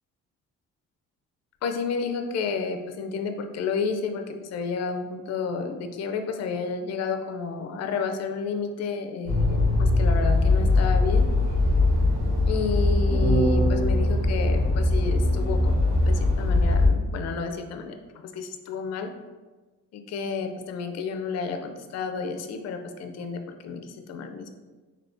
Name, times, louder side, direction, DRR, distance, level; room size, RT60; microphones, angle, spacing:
voice 1, 1.6-11.2 12.5-18.0 18.2-19.1 19.9-24.6, left 5 dB, 60° left, 6 dB, 0.4 m, -31 dB
sound 1, 9.3-16.9, left 2 dB, 45° right, 1.1 m, -21 dB
3.3 x 2.8 x 2.6 m, 1.3 s
cardioid pair, 90°, 30 cm